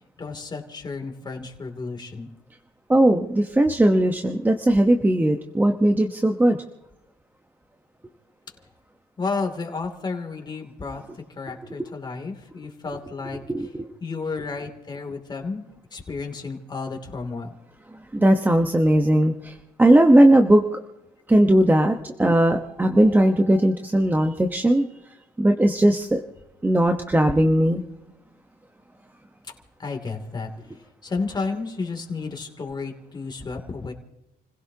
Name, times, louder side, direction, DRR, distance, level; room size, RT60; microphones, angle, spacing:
voice 1, 0.2-2.3 9.2-11.0 11.4-13.4 14.0-15.6 15.9-17.5 29.8-30.5 31.0-33.9, left 4 dB, 25° left, 4 dB, 2.8 m, -32 dB
voice 2, 2.9-6.6 13.5-13.8 18.1-19.5 19.8-20.8 21.3-24.9 25.4-26.2 26.6-27.8, right 1 dB, 10° right, 4 dB, 1.1 m, -18 dB
30.0 x 16.5 x 2.9 m, 0.87 s
cardioid pair, 110°, 17 cm